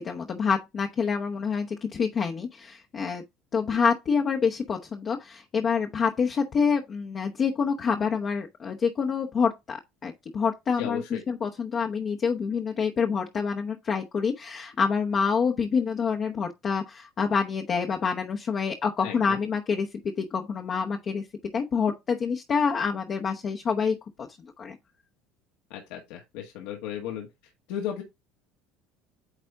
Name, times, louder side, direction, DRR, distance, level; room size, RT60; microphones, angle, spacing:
voice 1, 0.0-3.2 3.5-21.2 21.5-24.0 24.6-24.8, left 6 dB, 30° left, 0.9 m, -27 dB
voice 2, 10.8-11.2 19.0-19.4 25.7-27.3 27.7-28.0, left 9 dB, 80° left, 1.7 m, -35 dB
9.1 x 4.1 x 3.5 m
cardioid pair, 140°, 0 cm